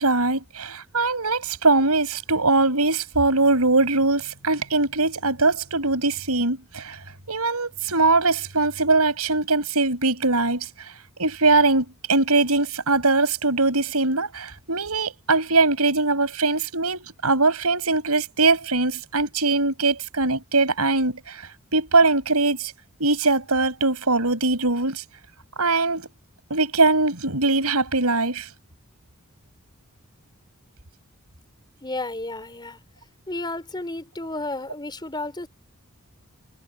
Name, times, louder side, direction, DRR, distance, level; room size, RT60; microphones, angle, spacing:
voice 1, 0.0-7.0 7.3-10.7 11.2-21.4 21.7-22.7 23.0-25.0 25.6-26.1 26.5-28.5, right 3 dB, 90° right, 6.0 m, -21 dB
voice 2, 31.8-32.8 33.3-35.5, left 2 dB, 20° left, 4.9 m, -32 dB
head